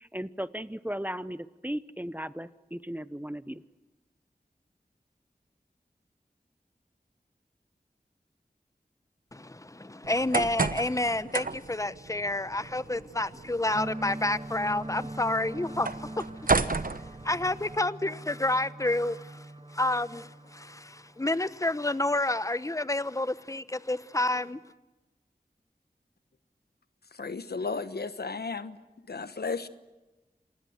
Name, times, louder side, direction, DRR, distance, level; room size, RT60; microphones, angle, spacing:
voice 1, 0.0-3.6, equal, 10° right, 0.9 m, -36 dB
voice 2, 9.3-24.6, left 2 dB, 20° left, 0.9 m, -30 dB
sound 1, 10.0-17.8, right 3 dB, 60° right, 1.0 m, -33 dB
sound 2, 13.7-22.1, right 1 dB, 35° right, 1.8 m, -42 dB
voice 3, 27.2-28.8 29.1-29.7, left 4 dB, 90° left, 1.1 m, -34 dB
27.5 x 20.5 x 7.9 m
wide cardioid pair, 45°, 16 cm